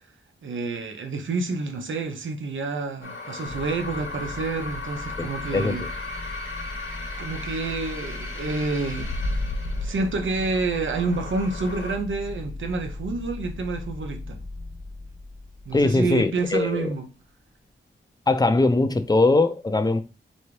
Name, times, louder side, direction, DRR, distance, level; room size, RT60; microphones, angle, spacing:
voice 1, 0.4-5.8 6.6-6.7 7.2-9.1 9.8-14.4 15.6-17.1, right 3 dB, 75° right, 0.8 m, -28 dB
sound 1, 3.0-12.0, left 2 dB, 70° left, 1.2 m, -34 dB
sound 2, 3.5-16.8, left 2 dB, 55° right, 1.8 m, -38 dB
voice 2, 5.2-5.9 15.7-16.9 18.3-20.0, left 2 dB, 20° left, 0.5 m, -21 dB
4.3 x 3.4 x 3.2 m
wide cardioid pair, 90°, 20 cm